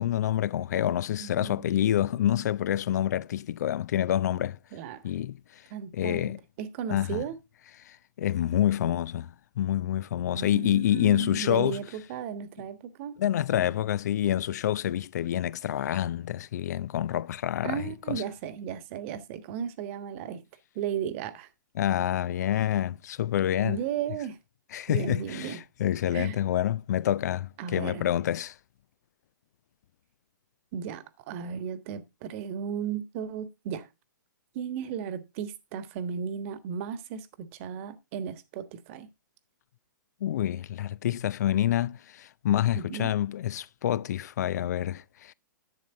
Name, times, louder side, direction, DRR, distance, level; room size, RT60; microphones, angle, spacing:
voice 1, 0.0-4.6 5.0-5.6 5.9-6.4 6.9-7.2 7.8-11.8 13.2-18.2 21.8-23.8 24.7-28.6 40.2-45.3, left 11 dB, 55° left, 0.5 m, -27 dB
voice 2, 1.2-2.5 4.7-5.0 5.7-7.4 10.3-13.1 17.6-20.4 20.7-21.5 23.6-24.4 24.9-25.6 26.1-26.4 27.6-28.0 30.7-33.9 34.5-39.1 42.7-43.1, right 8 dB, 40° right, 1.4 m, -35 dB
11.0 x 8.5 x 3.6 m
figure-of-eight pair, 120°, 11 cm